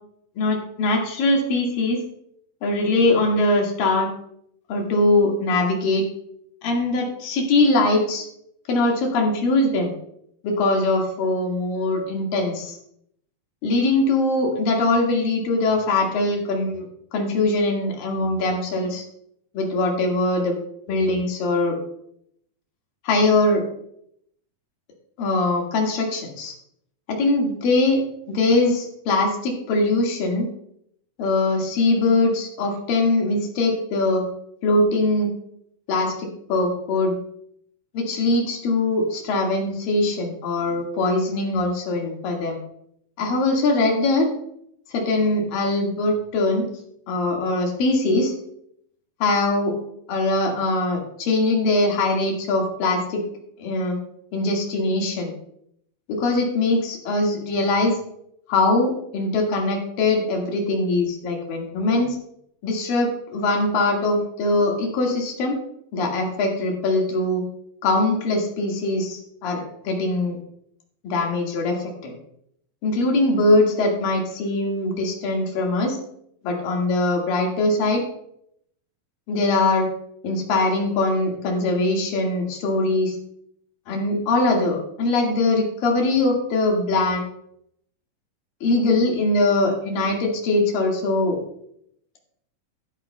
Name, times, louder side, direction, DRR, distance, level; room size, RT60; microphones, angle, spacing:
voice 1, 0.4-2.0 2.6-4.1 4.7-6.1 6.6-8.3 8.7-9.9 10.4-12.8 13.6-16.9 17.1-19.0 19.5-20.6 20.9-21.8 23.0-23.6 25.2-26.5 27.1-28.0 28.3-30.5 31.2-34.3 34.6-35.3 35.9-37.1 37.9-42.6 43.2-44.3 44.9-46.6 47.1-48.3 49.2-49.8 50.1-53.2 53.6-54.0 54.3-55.3 56.1-58.0 58.5-62.2 62.6-65.6 65.9-67.4 67.8-70.4 71.0-72.1 72.8-76.0 76.4-78.0 79.3-79.9 80.2-83.2 83.9-87.3 88.6-91.4, left 2 dB, 80° left, 0 dB, 3.6 m, -22 dB
13.0 x 11.5 x 2.2 m, 0.72 s
omnidirectional pair, 3.9 m